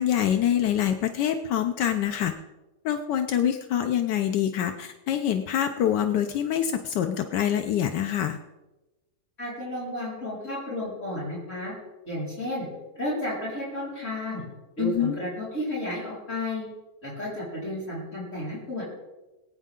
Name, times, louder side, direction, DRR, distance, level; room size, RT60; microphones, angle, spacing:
voice 1, 0.0-2.3 2.8-8.4 14.8-15.2, left 10 dB, 80° left, 7 dB, 1.3 m, -25 dB
voice 2, 9.4-11.7 12.0-12.6 12.9-14.4 14.8-16.7 17.0-18.8, left 1 dB, 40° left, -8 dB, 5.1 m, -32 dB
20.5 x 9.3 x 3.7 m, 1.1 s
omnidirectional pair, 1.9 m